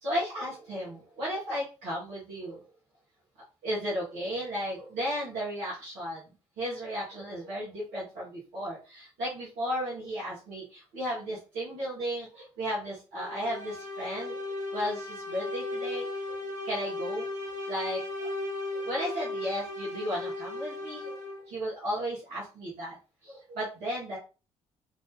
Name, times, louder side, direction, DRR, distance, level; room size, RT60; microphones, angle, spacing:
voice 1, 0.0-2.6 3.6-6.2 6.6-14.4 14.7-16.3 16.6-17.2 17.7-18.0 18.7-21.2 21.5-23.0 23.2-24.2, equal, 70° right, -7 dB, 1.6 m, -34 dB
sound 1, 13.2-21.5, left 2 dB, 45° right, 1.5 m, -36 dB
3.1 x 2.8 x 3.6 m, 0.32 s
hypercardioid pair, 45°, 17 cm